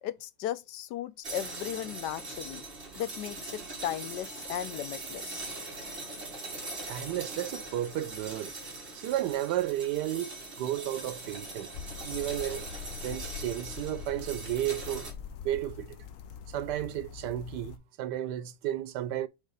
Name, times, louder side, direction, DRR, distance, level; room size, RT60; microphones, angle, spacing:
voice 1, 0.0-2.6 3.0-5.5, left 11 dB, 80° left, 1.2 m, -36 dB
sound 1, 1.2-15.1, right 2 dB, 35° right, 2.0 m, -41 dB
voice 2, 6.9-8.5 8.9-11.7 12.0-12.7 13.0-15.1 15.4-16.0 16.5-19.3, right 13 dB, 85° right, 1.2 m, -33 dB
sound 2, 11.7-17.8, left 7 dB, 65° left, 0.9 m, -43 dB
5.5 x 3.6 x 4.8 m
omnidirectional pair, 1.8 m